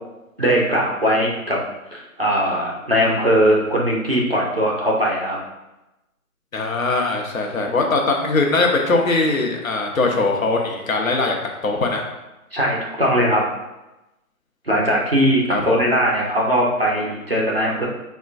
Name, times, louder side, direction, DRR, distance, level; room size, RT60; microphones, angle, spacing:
voice 1, 0.4-1.6 1.9-5.4 12.5-13.4 14.7-17.9, equal, 45° right, -4 dB, 0.5 m, -20 dB
voice 2, 6.5-11.4 11.6-12.0 15.5-15.8, left 3 dB, 65° left, 1 dB, 0.7 m, -21 dB
4.1 x 2.2 x 2.4 m, 0.98 s
figure-of-eight pair, 170°, 44 cm